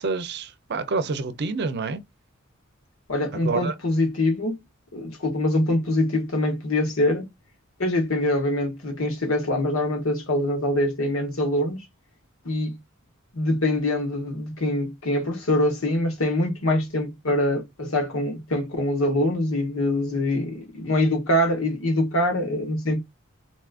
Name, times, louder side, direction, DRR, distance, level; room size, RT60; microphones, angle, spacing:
voice 1, 0.0-2.0 3.4-3.7, right 4 dB, 55° right, 0.5 m, -27 dB
voice 2, 3.1-4.6 4.9-7.2 7.8-11.9 12.4-12.8 13.3-23.0, left 1 dB, 85° left, 1.2 m, -24 dB
4.0 x 2.4 x 2.3 m
head